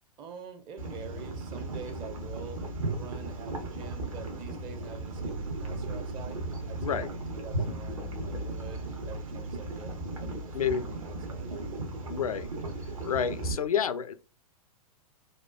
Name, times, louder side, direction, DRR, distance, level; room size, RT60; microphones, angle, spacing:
voice 1, 0.2-11.9, right 6 dB, 25° right, 0.5 m, -46 dB
sound 1, 0.8-13.5, right 2 dB, 60° right, 0.9 m, -36 dB
voice 2, 10.5-10.8 12.1-12.5 13.0-14.1, left 8 dB, 70° left, 0.4 m, -29 dB
4.1 x 2.2 x 2.3 m
figure-of-eight pair, 105°, 19 cm